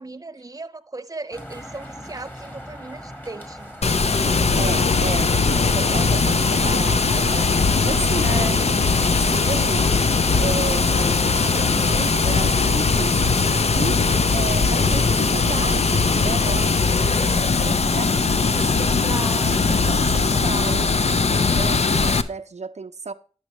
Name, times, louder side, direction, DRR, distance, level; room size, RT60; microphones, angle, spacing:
voice 1, 0.0-4.4 8.2-8.6 18.5-19.9, right 3 dB, 30° right, 0.6 m, -36 dB
sound 1, 1.3-12.0, equal, 15° left, 1.5 m, -39 dB
Water, 3.8-22.2, left 4 dB, 70° left, 0.5 m, -20 dB
voice 2, 4.3-7.5 7.8-13.2 13.7-14.0 14.3-18.7 19.5-23.1, right 4 dB, 85° right, 0.4 m, -33 dB
Mallet percussion, 10.9-13.4, left 6 dB, 45° left, 3.5 m, -43 dB
10.5 x 6.4 x 3.0 m
wide cardioid pair, 45°, 11 cm